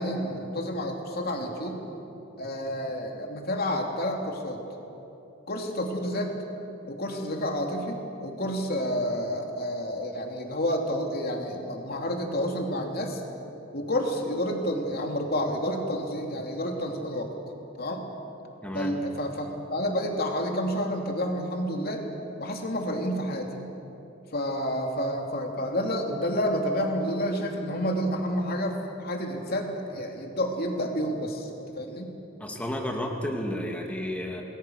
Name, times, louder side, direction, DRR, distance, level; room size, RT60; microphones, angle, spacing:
voice 1, 0.0-1.8 2.4-4.6 5.5-6.3 6.9-13.2 13.7-17.3 17.8-18.0 18.7-22.0 22.4-23.5 24.3-32.1, equal, 50° left, 2 dB, 3.0 m, -29 dB
voice 2, 18.6-19.0 32.4-34.4, left 1 dB, 5° left, 1 dB, 2.2 m, -32 dB
28.0 x 20.5 x 6.5 m, 2.9 s
head